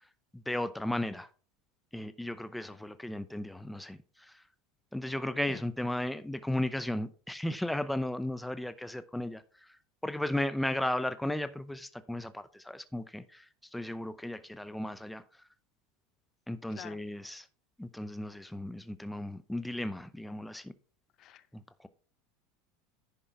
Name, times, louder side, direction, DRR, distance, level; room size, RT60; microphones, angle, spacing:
voice 1, 0.3-1.3 1.9-4.4 4.9-9.8 10.0-15.2 16.5-17.5 17.8-20.7 21.5-21.9, left 1 dB, 5° left, 0.6 m, -35 dB
voice 2, 5.5-5.6 16.7-17.0 21.2-21.5, left 11 dB, 45° left, 0.7 m, -47 dB
10.5 x 5.4 x 4.6 m
supercardioid pair, 110°, 0 cm